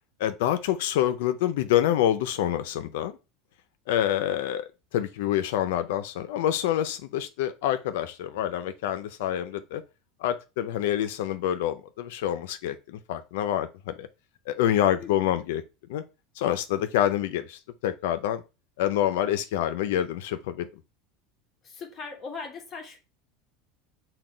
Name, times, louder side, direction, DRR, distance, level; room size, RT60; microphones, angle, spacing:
voice 1, 0.2-3.2 3.9-9.8 10.2-14.1 14.5-15.6 15.9-16.0 16.4-18.4 18.8-20.7, left 11 dB, 80° left, 0.4 m, -27 dB
voice 2, 21.6-23.0, left 4 dB, 30° left, 1.0 m, -39 dB
5.8 x 2.2 x 3.7 m
supercardioid pair, 160°, 0 cm